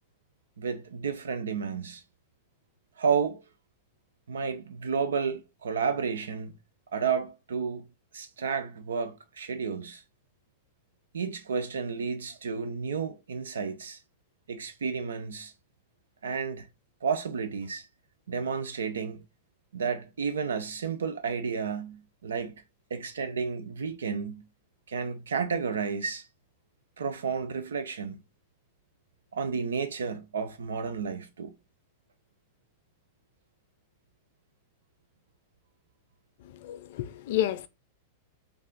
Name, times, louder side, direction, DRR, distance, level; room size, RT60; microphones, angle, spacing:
voice 1, 0.6-2.0 3.0-3.4 4.3-6.5 6.9-7.9 8.1-10.0 11.1-14.0 14.5-15.5 16.2-16.7 17.0-17.9 18.3-19.2 19.7-22.5 22.9-24.4 24.9-26.3 27.0-28.2 29.3-31.5, right 6 dB, 85° right, 0.5 m, -31 dB
voice 2, 36.4-37.7, left 12 dB, 65° left, 0.4 m, -30 dB
3.2 x 2.4 x 3.7 m
hypercardioid pair, 110°, 0 cm